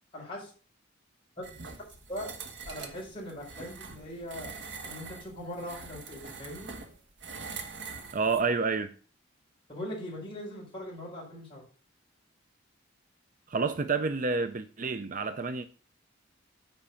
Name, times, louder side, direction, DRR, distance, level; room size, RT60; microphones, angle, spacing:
voice 1, 0.1-0.5 2.1-2.3 2.7-4.5 4.8-6.7 9.7-11.6, left 1 dB, 25° left, 4.7 m, -40 dB
sound 1, 1.4-8.5, right 4 dB, 60° right, 1.2 m, -44 dB
voice 2, 8.1-8.9 13.5-15.7, right 4 dB, 40° right, 0.5 m, -29 dB
8.9 x 4.9 x 5.6 m
head